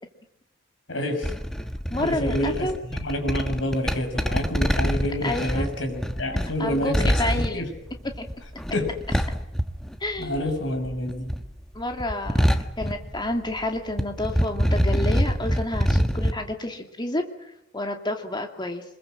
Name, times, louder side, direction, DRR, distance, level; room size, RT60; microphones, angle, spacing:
voice 1, 0.9-1.3 2.0-7.7 8.7-9.2 10.2-11.3, left 1 dB, 65° left, 5 dB, 6.2 m, -28 dB
sound 1, 1.2-10.5 10.8-13.6 13.9-16.3, equal, ahead, 1.2 m, -25 dB
voice 2, 1.9-2.7 5.2-5.7 6.6-7.7 8.2-8.3 10.0-10.4 11.7-18.8, left 1 dB, 20° left, 4 dB, 2.5 m, -30 dB
26.0 x 21.5 x 7.8 m, 0.84 s
head